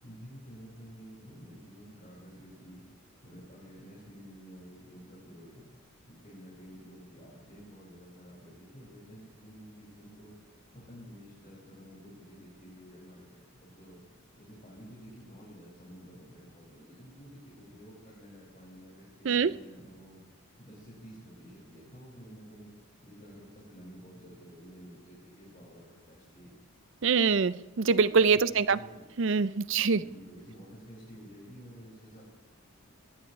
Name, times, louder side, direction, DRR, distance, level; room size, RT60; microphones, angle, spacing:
voice 1, 0.0-2.8 3.2-5.7 6.0-10.4 10.7-14.0 14.4-20.2 20.6-22.7 23.0-26.5 28.3-29.0 29.9-32.2, equal, 35° left, -7 dB, 6.0 m, -50 dB
voice 2, 27.0-28.8 29.2-30.0, right 5 dB, 60° right, 16 dB, 0.5 m, -24 dB
21.0 x 19.0 x 3.3 m, 1.2 s
head